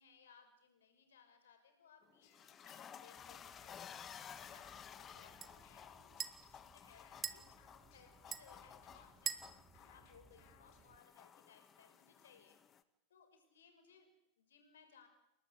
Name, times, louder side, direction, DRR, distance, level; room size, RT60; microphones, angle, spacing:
voice 1, 0.0-7.4 7.9-9.4 9.8-12.6 13.1-15.1, left 6 dB, 65° left, 7 dB, 6.2 m, -66 dB
sound 1, 2.0-12.8, left 8 dB, 25° left, 1.6 m, -56 dB
sound 2, 2.2-11.0, left 9 dB, 45° left, 5.0 m, -69 dB
sound 3, 3.2-11.0, right 7 dB, 20° right, 1.8 m, -50 dB
29.5 x 19.0 x 8.3 m, 0.89 s
figure-of-eight pair, 90°, 0 cm